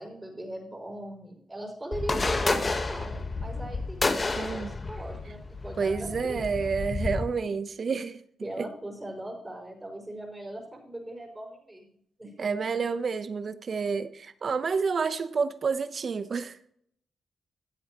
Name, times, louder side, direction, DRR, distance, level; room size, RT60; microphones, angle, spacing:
voice 1, 0.0-6.5 8.4-11.9 12.2-12.6, right 1 dB, 20° right, 5.3 m, -39 dB
sound 1, 1.9-7.2, left 3 dB, 40° left, 1.3 m, -30 dB
voice 2, 4.4-4.7 5.8-8.2 8.6-8.7 12.4-16.7, right 5 dB, 55° right, 0.9 m, -29 dB
15.5 x 8.2 x 3.1 m
supercardioid pair, 45°, 0 cm